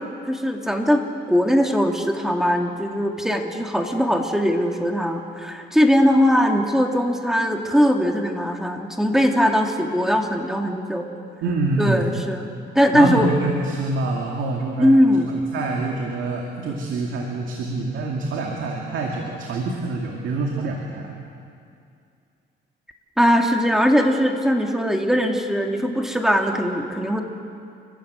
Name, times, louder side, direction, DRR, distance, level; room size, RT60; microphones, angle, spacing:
voice 1, 0.0-11.1 11.8-12.5 12.7-13.3 14.8-15.3 23.2-27.2, equal, ahead, 2 dB, 2.5 m, -20 dB
voice 2, 11.4-12.1 12.9-15.0 15.3-21.1, right 3 dB, 80° right, 0 dB, 2.4 m, -26 dB
30.0 x 13.0 x 8.3 m, 2.4 s
cardioid pair, 90°, 20 cm